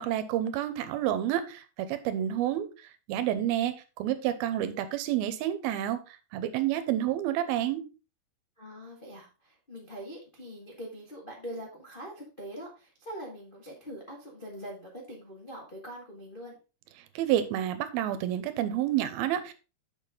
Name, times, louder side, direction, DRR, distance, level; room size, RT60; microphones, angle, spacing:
voice 1, 0.0-1.6 1.9-2.7 3.1-6.0 6.3-7.8 17.2-19.5, right 12 dB, 85° right, 11 dB, 2.6 m, -29 dB
voice 2, 8.6-16.5, equal, 80° left, -3 dB, 0.4 m, -43 dB
6.8 x 6.7 x 3.7 m, 0.31 s
omnidirectional pair, 4.4 m